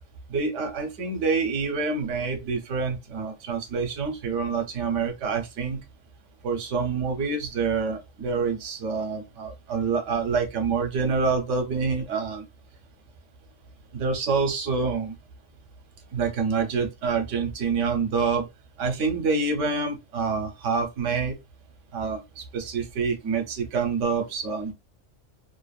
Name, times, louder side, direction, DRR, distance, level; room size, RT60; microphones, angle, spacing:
voice 1, 0.3-5.8 6.4-12.4 13.9-15.1 16.1-18.5 18.8-21.4 21.9-24.7, right 4 dB, 65° right, 1.0 m, -27 dB
2.7 x 2.4 x 2.3 m
omnidirectional pair, 1.4 m